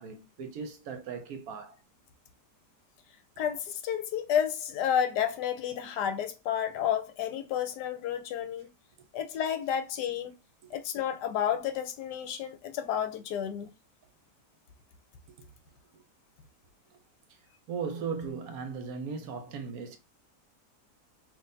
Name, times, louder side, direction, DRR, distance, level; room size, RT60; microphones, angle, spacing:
voice 1, 0.0-1.8 17.7-20.0, right 5 dB, 65° right, 1.1 m, -37 dB
voice 2, 3.4-8.7 9.1-10.3 10.7-13.7, left 9 dB, 80° left, 1.2 m, -31 dB
3.8 x 2.7 x 2.6 m
omnidirectional pair, 1.8 m